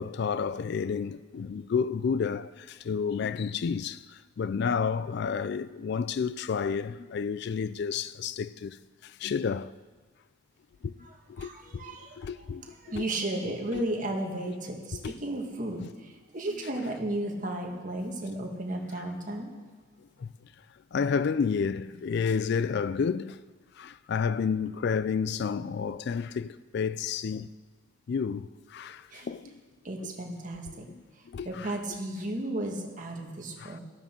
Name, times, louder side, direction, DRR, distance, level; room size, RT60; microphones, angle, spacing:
voice 1, 0.0-4.0 4.4-8.8 9.0-9.7 10.8-10.9 11.4-11.5 11.9-12.6 13.0-13.1 15.0-15.1 15.8-15.9 20.2-20.3 20.9-23.4 23.8-27.5 28.1-29.6 30.0-30.1 31.3-31.7 32.7-32.8 33.6-33.8, left 6 dB, 55° left, 0.3 m, -30 dB
voice 2, 11.0-12.2 12.6-19.5 29.1-29.3 29.8-30.9 31.4-33.8, right 1 dB, 40° right, 1.6 m, -34 dB
13.5 x 12.5 x 4.5 m
head